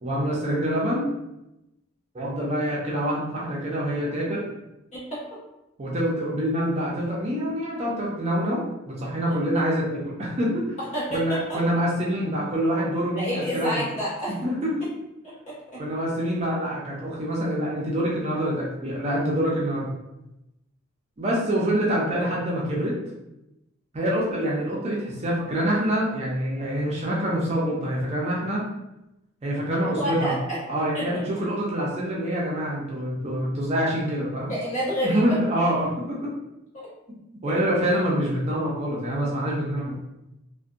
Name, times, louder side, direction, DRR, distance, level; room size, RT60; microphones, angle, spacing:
voice 1, 0.0-1.0 2.1-4.4 5.8-10.8 11.1-13.8 14.3-14.8 15.8-19.9 21.2-23.0 23.9-28.6 29.4-30.4 30.7-34.5 35.0-36.3 37.4-40.0, equal, 30° right, -5 dB, 0.4 m, -26 dB
voice 2, 4.9-5.2 10.8-11.6 13.1-14.3 15.2-15.8 30.0-30.6 30.9-31.3 34.5-35.4, equal, 35° left, -9 dB, 1.3 m, -29 dB
2.6 x 2.1 x 2.4 m, 0.91 s
head